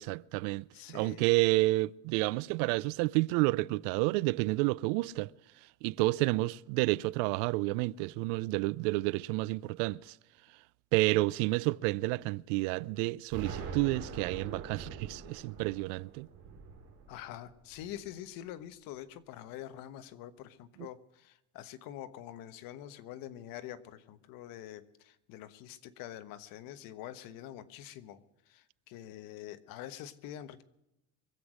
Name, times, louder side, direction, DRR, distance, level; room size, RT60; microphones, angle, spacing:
voice 1, 0.0-5.3 5.8-10.2 10.9-16.3 20.8-20.9, right 21 dB, 85° right, 0.5 m, -30 dB
voice 2, 0.7-1.2 17.1-28.2 28.5-30.6, left 12 dB, 65° left, 1.3 m, -46 dB
Explosion, 13.3-18.2, right 5 dB, 45° right, 5.2 m, -44 dB
24.0 x 8.2 x 6.3 m
cardioid pair, 150°, 37 cm